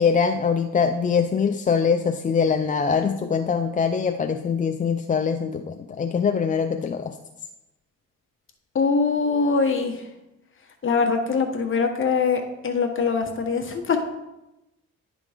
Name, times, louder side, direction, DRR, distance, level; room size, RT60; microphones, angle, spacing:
voice 1, 0.0-7.1, left 6 dB, 25° left, 6 dB, 0.4 m, -23 dB
voice 2, 8.7-10.0 10.8-14.0, left 5 dB, 40° left, 4 dB, 1.2 m, -23 dB
10.0 x 3.8 x 4.9 m, 0.96 s
cardioid pair, 90°, 30 cm